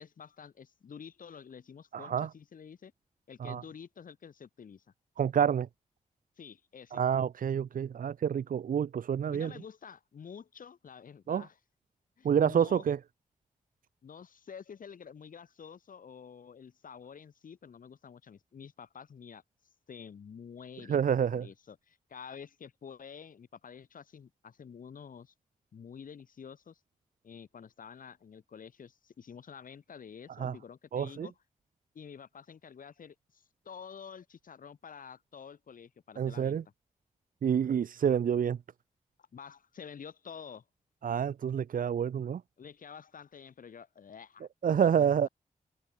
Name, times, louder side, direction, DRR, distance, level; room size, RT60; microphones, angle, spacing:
voice 1, 0.0-2.9 3.3-4.8 6.4-7.0 9.3-11.6 12.2-12.9 14.0-19.4 19.9-21.0 21.3-25.3 25.7-26.8 27.2-31.3 31.9-36.6 39.3-40.6 42.6-45.1, left 7 dB, 75° left, 4.3 m, -49 dB
voice 2, 1.9-2.3 3.4-3.6 5.2-5.7 6.9-9.5 11.3-11.4 12.2-13.0 20.9-21.5 30.4-30.5 30.9-31.3 36.2-36.6 37.4-38.6 41.0-42.4 44.6-45.3, right 8 dB, 80° right, 0.8 m, -28 dB
open air
wide cardioid pair, 140°, 14 cm